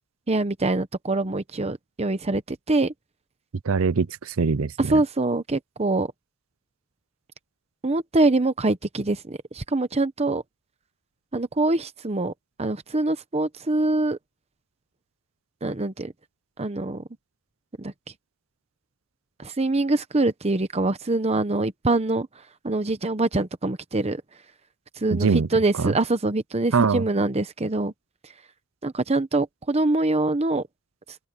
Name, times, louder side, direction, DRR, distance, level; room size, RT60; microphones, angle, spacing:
voice 1, 0.3-2.9 4.8-6.1 7.8-10.4 11.3-12.3 12.6-14.2 15.6-16.1 16.6-17.0 17.8-17.9 19.4-22.3 22.6-24.2 25.0-27.9 28.8-30.6, right 2 dB, 30° right, 0.9 m, -24 dB
voice 2, 3.6-5.0 25.1-25.5 25.7-26.0 26.7-27.1, right 5 dB, 80° right, 0.6 m, -23 dB
head